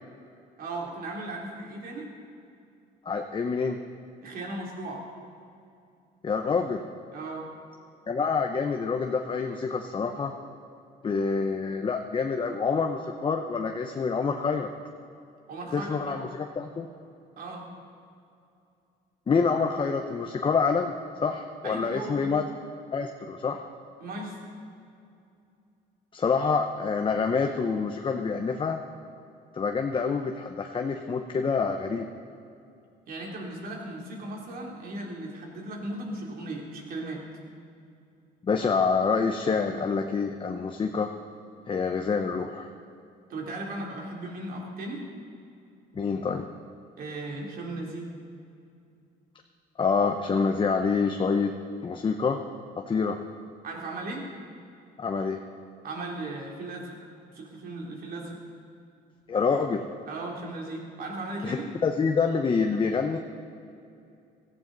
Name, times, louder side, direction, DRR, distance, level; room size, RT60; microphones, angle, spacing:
voice 1, 0.6-2.1 4.2-5.0 7.1-7.5 15.5-16.2 17.4-17.7 21.6-22.3 24.0-24.4 33.1-37.3 43.3-45.0 47.0-48.1 53.6-54.3 55.8-57.0 57.3-58.4 60.1-61.7, right 2 dB, 60° right, -1 dB, 3.2 m, -36 dB
voice 2, 3.0-3.8 6.2-6.8 8.1-10.3 11.0-14.7 15.7-16.9 19.3-20.9 21.2-22.4 22.9-23.6 26.1-28.8 29.5-32.1 38.4-41.1 41.7-42.7 45.9-46.5 49.8-51.5 51.8-52.4 52.8-53.2 55.0-55.4 59.3-59.9 61.4-61.6 61.8-63.2, left 5 dB, 30° left, 4 dB, 0.8 m, -27 dB
17.0 x 15.0 x 4.0 m, 2.6 s
cardioid pair, 110°, 17 cm